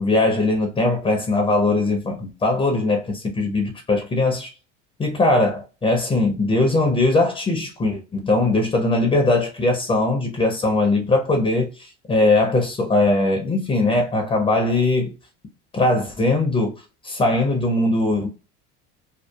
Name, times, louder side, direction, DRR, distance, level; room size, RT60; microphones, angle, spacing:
voice 1, 0.0-4.5 5.0-15.1 15.7-16.7 17.0-18.3, left 2 dB, 15° left, 0.5 m, -20 dB
2.6 x 2.3 x 2.2 m
supercardioid pair, 100°, 33 cm